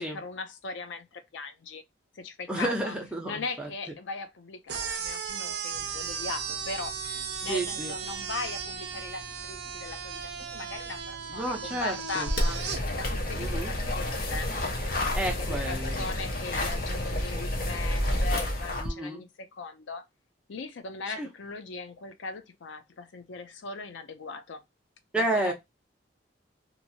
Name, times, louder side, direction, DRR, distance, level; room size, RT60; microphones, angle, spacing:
voice 1, 0.0-1.8 2.1-2.9 3.3-12.6 12.9-14.5 14.9-20.0 20.5-24.6 25.1-25.5, left 3 dB, 80° left, 0.5 m, -39 dB
voice 2, 2.5-3.7 7.4-7.9 11.3-12.3 13.4-13.7 15.1-16.1 18.8-19.2 21.2-21.3 25.1-25.5, right 1 dB, 5° right, 0.6 m, -31 dB
sound 1, 4.7-12.8, right 7 dB, 60° right, 0.5 m, -36 dB
sound 2, 5.7-18.1, equal, 20° left, 1.3 m, -50 dB
sound 3, 12.3-18.9, left 1 dB, 50° left, 0.8 m, -29 dB
2.9 x 2.6 x 2.7 m
head